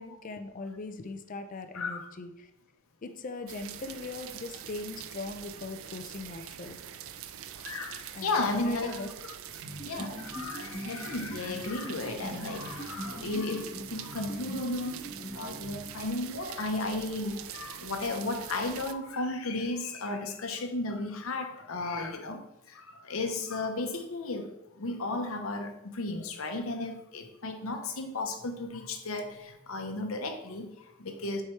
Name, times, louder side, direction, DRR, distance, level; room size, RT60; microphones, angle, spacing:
voice 1, 0.0-2.5 3.0-6.8 8.1-9.1 22.0-22.1, left 3 dB, 40° left, 8 dB, 0.5 m, -40 dB
voice 2, 1.7-2.1 7.6-9.0 9.8-15.0 15.3-22.4 22.7-31.4, left 2 dB, 70° left, 4 dB, 0.9 m, -34 dB
sound 1, 3.5-18.9, right 10 dB, 70° right, 0.4 m, -44 dB
sound 2, 9.6-16.3, equal, 15° left, 1.6 m, -42 dB
7.5 x 4.7 x 3.2 m, 0.88 s
head